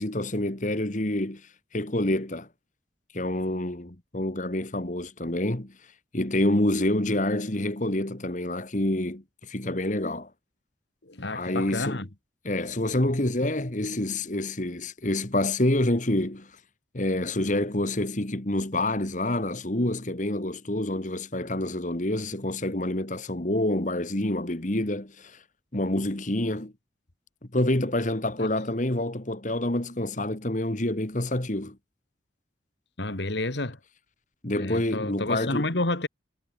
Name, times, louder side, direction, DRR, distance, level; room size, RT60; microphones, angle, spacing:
voice 1, 0.0-2.5 3.1-5.7 6.1-10.3 11.3-12.1 12.4-16.5 16.9-25.4 25.7-26.7 27.5-31.8 34.4-35.7, left 1 dB, 40° left, 1.9 m, -27 dB
voice 2, 11.0-12.1 28.4-28.5 33.0-33.8 34.6-36.1, left 2 dB, 65° left, 2.1 m, -30 dB
head